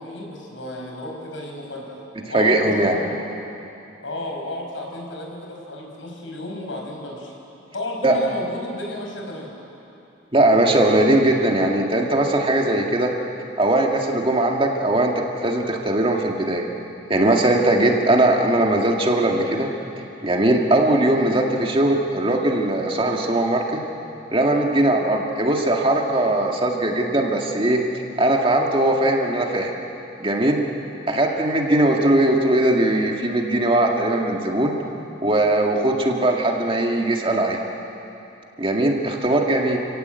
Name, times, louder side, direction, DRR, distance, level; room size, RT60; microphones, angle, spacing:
voice 1, 0.0-3.3 4.0-7.3 7.7-9.5 39.6-39.8, left 1 dB, 85° left, 0 dB, 5.6 m, -33 dB
voice 2, 2.3-3.0 8.0-8.2 10.3-13.1 13.6-16.7 17.1-19.7 20.2-23.8 24.3-27.8 28.2-29.7 30.2-30.6 31.1-34.7 35.2-37.6 38.6-39.8, right 1 dB, 30° right, 1 dB, 2.1 m, -20 dB
29.0 x 17.5 x 8.2 m, 2.8 s
head